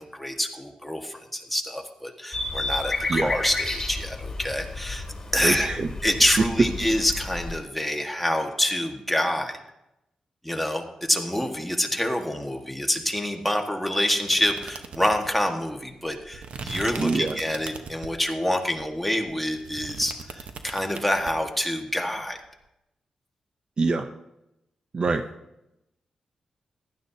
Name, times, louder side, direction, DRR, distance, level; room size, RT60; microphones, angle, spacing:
voice 1, 0.0-5.0 5.3-5.7 6.0-9.6 10.4-22.4, left 1 dB, 5° left, 2 dB, 1.5 m, -26 dB
sound 1, 2.3-7.6, left 2 dB, 30° left, 2.8 m, -32 dB
voice 2, 5.4-5.9 17.0-17.4 23.8-24.1 24.9-25.2, right 3 dB, 45° right, 7 dB, 0.7 m, -25 dB
Cartas de baralho, 14.3-18.3 18.8-21.3, right 5 dB, 70° right, 1.0 m, -39 dB
15.5 x 11.5 x 2.8 m, 0.89 s
cardioid pair, 75°, 2 cm